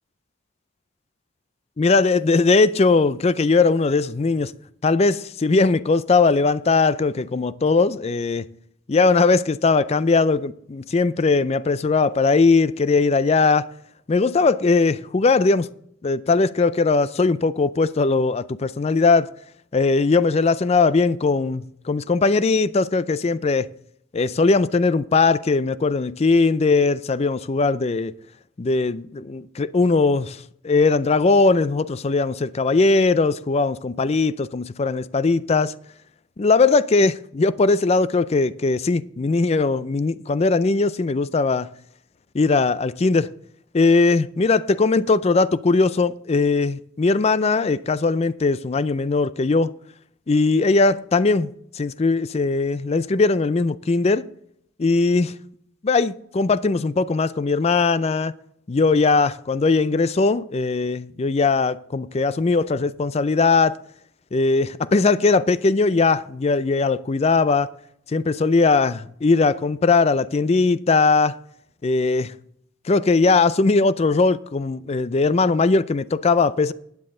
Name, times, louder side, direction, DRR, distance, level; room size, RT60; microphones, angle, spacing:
voice 1, 1.8-4.5 4.8-8.5 8.9-13.7 14.1-15.7 16.0-19.3 19.7-23.7 24.1-28.1 28.6-35.7 36.4-41.7 42.3-43.3 43.7-49.7 50.3-51.5 51.7-54.3 54.8-55.3 55.8-58.3 58.7-63.8 64.3-67.7 68.1-71.4 71.8-72.3 72.9-76.7, left 3 dB, 30° left, 0.4 m, -19 dB
12.0 x 9.7 x 3.8 m
head